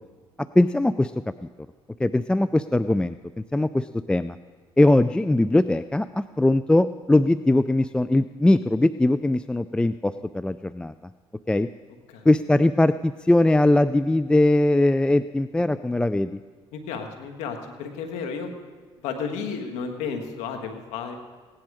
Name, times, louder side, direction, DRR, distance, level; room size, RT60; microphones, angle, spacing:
voice 1, 0.4-1.3 2.0-4.4 4.8-10.9 11.5-11.7 12.3-16.4, left 1 dB, 10° left, 13 dB, 0.3 m, -21 dB
voice 2, 16.7-18.5 19.0-21.1, left 6 dB, 90° left, 5 dB, 1.5 m, -32 dB
17.0 x 10.5 x 4.9 m, 1.5 s
supercardioid pair, 80°, 11 cm